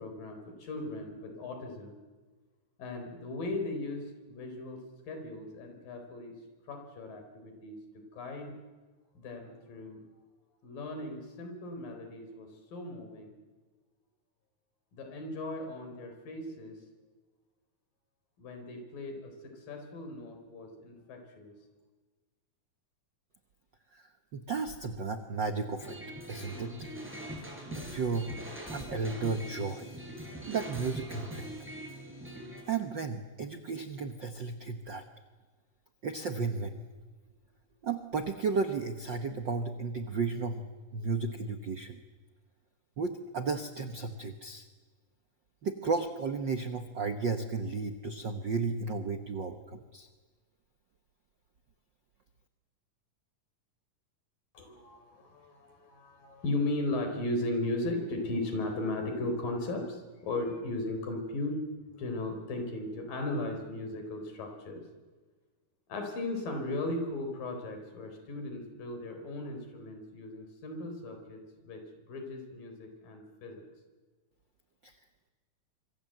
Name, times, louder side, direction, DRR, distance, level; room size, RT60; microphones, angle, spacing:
voice 1, 0.0-2.0 2.8-4.8 5.1-6.3 6.7-8.5 9.2-10.0 10.6-13.3 14.9-16.8 18.4-19.3 19.7-21.5 54.5-61.6 61.9-64.8 65.9-71.8 72.1-73.7, left 2 dB, 90° left, 5 dB, 5.9 m, -37 dB
voice 2, 23.9-26.0 26.3-26.8 27.7-28.3 28.7-29.9 30.5-31.5 32.7-35.0 36.0-36.8 37.8-40.6 40.9-42.0 43.0-44.6 45.6-50.1 74.8-74.9, right 4 dB, 70° right, 7 dB, 1.0 m, -34 dB
sound 1, 25.8-32.6, equal, 5° right, 6.1 m, -42 dB
26.0 x 23.5 x 7.9 m, 1.3 s
omnidirectional pair, 3.8 m